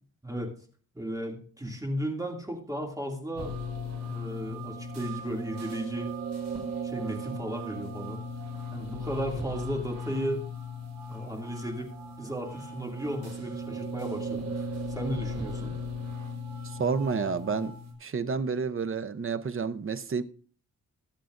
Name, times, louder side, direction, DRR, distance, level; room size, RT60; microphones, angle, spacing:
voice 1, 0.9-3.5 4.1-6.1 6.8-8.2 8.7-10.4 11.1-11.9 12.2-15.7, equal, 10° right, 2.5 m, -35 dB
sound 1, 3.4-17.9, equal, 60° right, 4.8 m, -37 dB
voice 2, 16.6-17.7 18.0-20.2, right 5 dB, 40° right, 0.8 m, -30 dB
22.0 x 8.3 x 2.6 m
wide cardioid pair, 125°, 32 cm